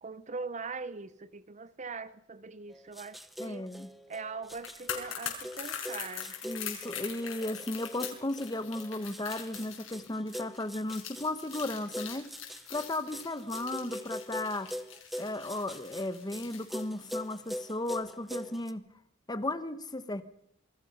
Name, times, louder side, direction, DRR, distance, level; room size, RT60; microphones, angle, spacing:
voice 1, 0.0-3.7 4.1-6.3, right 4 dB, 35° right, 15 dB, 0.8 m, -41 dB
sound 1, 2.7-18.7, equal, ahead, 0.9 m, -43 dB
voice 2, 3.4-3.9 6.4-12.3 12.7-14.7 15.2-18.8 19.3-20.2, left 2 dB, 20° left, 12 dB, 1.1 m, -35 dB
sound 2, 4.5-17.7 18.0-18.1, left 9 dB, 75° left, 5.6 m, -43 dB
27.0 x 20.5 x 5.5 m, 0.77 s
head